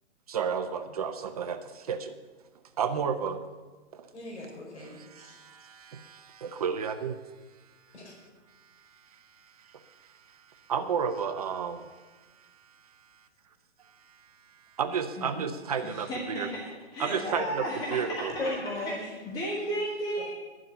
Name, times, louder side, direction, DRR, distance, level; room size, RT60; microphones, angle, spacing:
voice 1, 0.3-2.2 2.8-3.4 3.9-4.1 4.8-7.2 8.5-13.0 13.9-16.5 17.0-18.3, right 7 dB, 35° right, 8 dB, 0.7 m, -33 dB
voice 2, 4.1-5.3 7.9-8.1 17.1-17.2 18.4-19.1, left 2 dB, 75° left, -2 dB, 5.0 m, -36 dB
voice 3, 15.8-16.6 16.9-18.5 19.0-20.3, equal, 10° left, -4 dB, 1.4 m, -34 dB
11.5 x 7.5 x 9.7 m, 1.3 s
hypercardioid pair, 155°, 34 cm